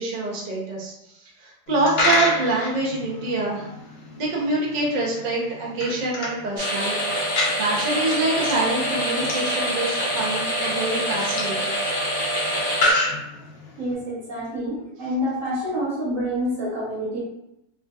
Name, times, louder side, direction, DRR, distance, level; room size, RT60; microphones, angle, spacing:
voice 1, 0.0-3.7 4.2-7.2 7.5-11.8, right 2 dB, 75° right, -4 dB, 0.4 m, -26 dB
Coin (dropping), 1.7-13.9, left 1 dB, 70° left, 0.6 m, -30 dB
sound 1, 6.6-12.9, equal, 25° left, 0.6 m, -25 dB
voice 2, 13.8-17.2, equal, 50° right, -6 dB, 1.4 m, -27 dB
3.5 x 2.7 x 2.2 m, 0.85 s
omnidirectional pair, 1.9 m